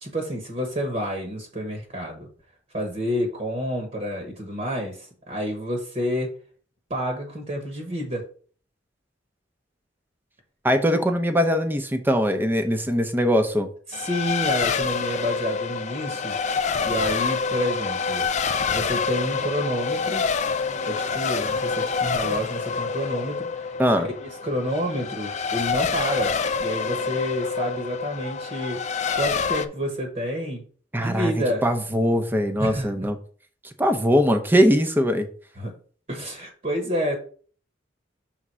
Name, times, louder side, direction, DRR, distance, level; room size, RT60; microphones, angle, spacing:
voice 1, 0.0-2.3 2.7-6.3 6.9-8.2 13.9-18.3 18.7-20.3 20.9-28.8 29.1-30.6 31.0-31.6 32.6-32.9 35.6-35.7 36.1-37.2, equal, 40° right, 2 dB, 1.2 m, -29 dB
voice 2, 10.6-13.7 23.8-24.1 30.9-31.3 31.6-33.2 33.8-35.3, equal, 10° right, 7 dB, 0.7 m, -21 dB
Race car auto racing, 13.9-29.7, left 5 dB, 40° left, 0.5 m, -27 dB
6.2 x 3.6 x 5.4 m, 0.44 s
head